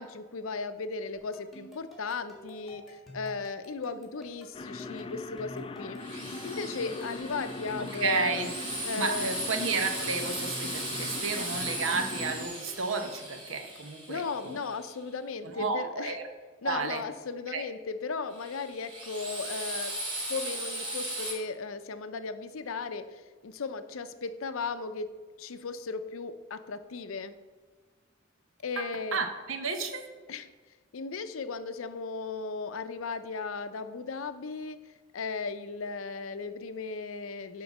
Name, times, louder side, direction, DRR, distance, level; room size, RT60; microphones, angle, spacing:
voice 1, 0.0-6.0 6.4-8.5 8.8-9.4 14.1-16.2 16.6-19.9 20.3-25.1 25.4-27.3 28.6-29.2 30.3-30.5 30.9-34.8 35.1-37.6, left 4 dB, 80° left, 11 dB, 0.5 m, -36 dB
sound 1, 1.1-13.5, right 1 dB, ahead, 1.7 m, -49 dB
sound 2, 4.5-12.5, left 3 dB, 25° left, 0.3 m, -41 dB
Drill, 6.0-14.9 18.3-21.3, right 1 dB, 25° right, 2.1 m, -37 dB
voice 2, 8.0-8.5 9.0-14.6 15.4-16.3 16.6-17.0 17.5-17.6 28.8-28.9 29.1-30.0, right 4 dB, 75° right, 6 dB, 0.9 m, -32 dB
9.5 x 3.8 x 5.9 m, 1.4 s
head